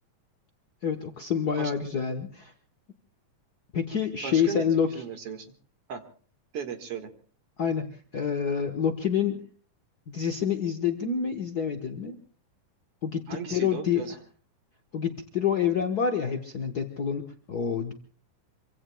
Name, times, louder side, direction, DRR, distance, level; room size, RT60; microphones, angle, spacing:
voice 1, 0.8-2.5 3.7-4.9 7.6-9.4 10.1-12.2 13.0-13.2 13.5-14.1 14.9-17.9, left 7 dB, 80° left, 5 dB, 0.8 m, -27 dB
voice 2, 4.2-4.7 4.9-5.5 5.9-6.0 6.5-7.1 13.3-14.1, right 7 dB, 50° right, 7 dB, 2.4 m, -36 dB
26.0 x 24.5 x 2.3 m, 0.42 s
omnidirectional pair, 3.5 m